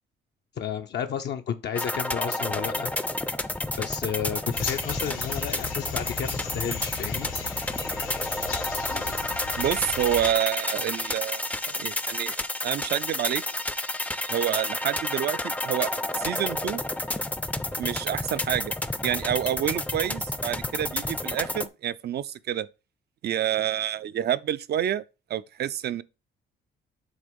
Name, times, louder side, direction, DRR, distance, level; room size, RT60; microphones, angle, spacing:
voice 1, 0.6-2.9 3.8-7.3, left 8 dB, 60° left, 0.6 m, -32 dB
sound 1, 1.8-21.7, left 1 dB, 5° left, 0.5 m, -30 dB
sound 2, 4.5-10.3, left 7 dB, 85° left, 1.8 m, -36 dB
voice 2, 9.6-12.4 12.6-13.4 14.3-16.8 17.8-18.7 19.0-22.7 23.2-25.0 25.3-26.0, right 10 dB, 55° right, 0.5 m, -28 dB
7.9 x 2.9 x 5.2 m
cardioid pair, 90°, 20 cm